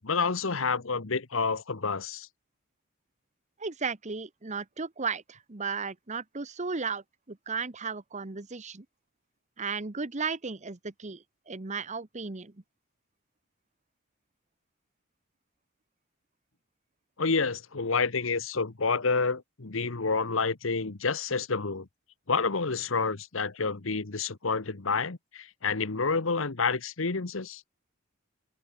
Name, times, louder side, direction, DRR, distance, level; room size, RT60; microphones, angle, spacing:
voice 1, 0.0-2.3 17.2-21.9 22.3-27.6, left 4 dB, 70° left, 1.2 m, -29 dB
voice 2, 3.6-8.8 9.6-12.5, right 5 dB, 35° right, 1.1 m, -35 dB
open air
head